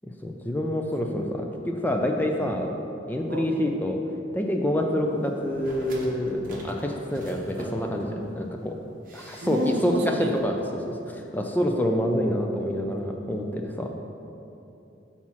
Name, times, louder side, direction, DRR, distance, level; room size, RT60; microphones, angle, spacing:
voice 1, 0.0-2.7 3.1-4.0 4.3-8.8 9.1-13.9, equal, 10° left, 2 dB, 0.4 m, -27 dB
sound 1, 5.4-8.4 9.0-10.1 10.4-10.5, right 1 dB, 50° right, 0.9 m, -43 dB
voice 2, 9.4-10.3, right 1 dB, 65° right, 3 dB, 0.6 m, -29 dB
5.7 x 4.2 x 6.1 m, 2.8 s
head